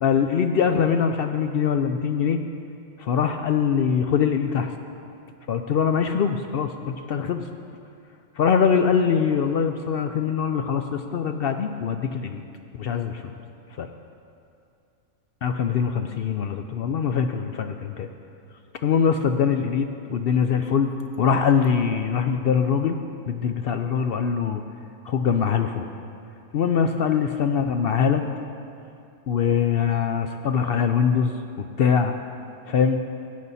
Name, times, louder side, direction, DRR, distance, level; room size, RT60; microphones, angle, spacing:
voice 1, 0.0-2.4 3.0-4.7 5.5-7.4 8.4-12.4 12.8-13.3 13.8-13.9 15.4-18.1 18.8-23.0 23.3-24.6 25.0-25.9 26.5-28.2 29.3-32.1 32.7-33.0, left 7 dB, 65° left, 7 dB, 0.6 m, -23 dB
14.5 x 9.3 x 4.1 m, 2.5 s
omnidirectional pair, 1.4 m